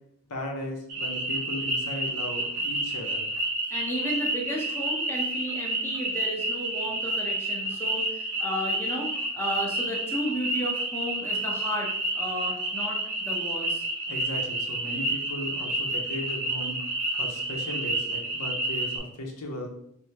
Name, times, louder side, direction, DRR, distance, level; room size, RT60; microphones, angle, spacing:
voice 1, 0.3-3.3 14.1-16.8 17.2-19.7, left 1 dB, 80° left, 2 dB, 0.7 m, -36 dB
sound 1, 0.9-19.0, right 1 dB, 85° right, 0.8 m, -30 dB
voice 2, 3.7-13.8, equal, 10° left, -3 dB, 0.6 m, -33 dB
3.2 x 2.7 x 2.8 m, 0.72 s
head